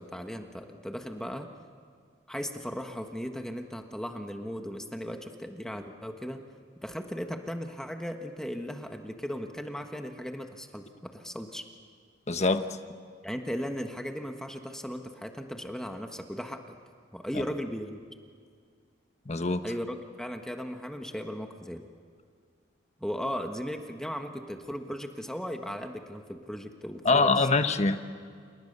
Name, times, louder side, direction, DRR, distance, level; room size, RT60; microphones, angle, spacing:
voice 1, 0.0-1.5 2.3-6.4 6.8-11.6 13.2-16.8 17.1-18.0 19.6-21.8 23.0-27.3, equal, 5° left, 4 dB, 1.4 m, -37 dB
voice 2, 12.3-12.7 17.3-17.4 19.3-19.6 27.0-28.0, left 3 dB, 40° left, 8 dB, 1.2 m, -24 dB
29.0 x 29.0 x 6.8 m, 2.1 s
head